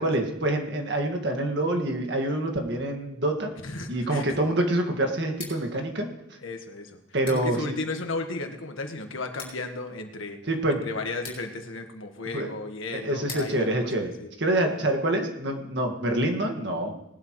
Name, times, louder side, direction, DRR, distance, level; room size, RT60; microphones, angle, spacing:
voice 1, 0.0-3.5 3.9-6.1 7.1-7.8 10.5-10.8 12.3-12.5 12.9-14.1 14.4-16.9, right 1 dB, 60° right, 3 dB, 1.9 m, -26 dB
voice 2, 3.6-4.4 6.4-7.0 7.3-10.4 10.7-14.3 14.6-14.9, left 3 dB, 80° left, 5 dB, 1.6 m, -35 dB
Scissors, 5.2-15.1, left 4 dB, 25° left, 5.5 m, -48 dB
19.5 x 12.0 x 3.2 m, 0.86 s
head